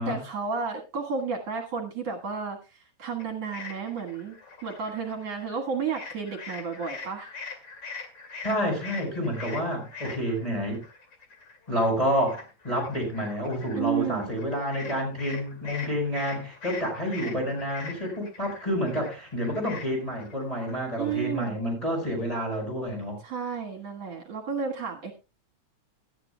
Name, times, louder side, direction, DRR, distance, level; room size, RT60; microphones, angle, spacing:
voice 1, 0.1-4.4 4.6-7.3 13.8-14.3 21.0-21.6 23.2-25.1, right 6 dB, 65° right, 2.6 m, -32 dB
sound 1, 3.2-5.6 5.9-21.3, left 4 dB, 40° left, 2.9 m, -43 dB
voice 2, 8.4-10.8 11.7-23.2, equal, 10° left, 5.0 m, -29 dB
18.0 x 12.5 x 2.3 m
omnidirectional pair, 3.3 m